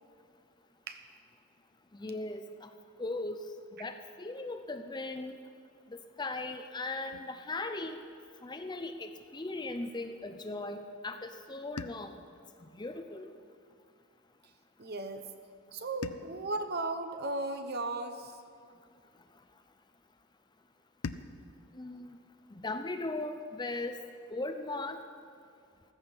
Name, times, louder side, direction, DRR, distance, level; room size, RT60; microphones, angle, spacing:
voice 1, 1.9-2.7 3.0-3.4 3.8-5.4 5.9-8.0 8.4-12.1 12.7-13.3 21.7-22.2 22.5-24.0 24.3-25.0, left 2 dB, 20° left, 7 dB, 0.6 m, -38 dB
sound 1, 7.1-9.3 11.8-14.1 16.0-18.5 21.0-23.6, left 4 dB, 85° left, 0.6 m, -49 dB
voice 2, 14.8-15.3 15.7-18.4, right 2 dB, 45° right, 8 dB, 0.9 m, -36 dB
15.0 x 14.5 x 5.4 m, 2.3 s
head